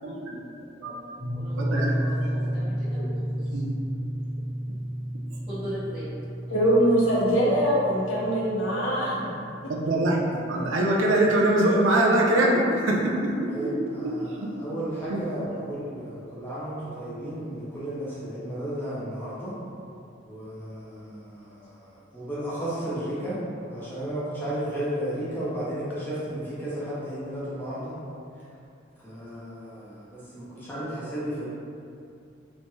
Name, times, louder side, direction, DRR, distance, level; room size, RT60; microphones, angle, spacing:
voice 1, 0.0-0.4 0.8-1.0 1.6-1.9 3.5-3.7 9.8-10.2 10.5-13.7 14.4-14.5 15.1-15.2, right 1 dB, 85° right, -1 dB, 0.5 m, -23 dB
voice 2, 1.2-3.1 3.5-3.6 5.5-6.1, equal, 35° right, -17 dB, 0.9 m, -38 dB
sound 1, 1.2-10.8, equal, 60° right, 1.0 m, -32 dB
voice 3, 6.5-9.7, equal, 75° left, -5 dB, 0.7 m, -23 dB
voice 4, 13.5-19.6 20.2-23.4 23.7-28.0 29.0-31.5, right 1 dB, 10° left, -10 dB, 0.5 m, -33 dB
3.1 x 2.7 x 2.2 m, 2.6 s
head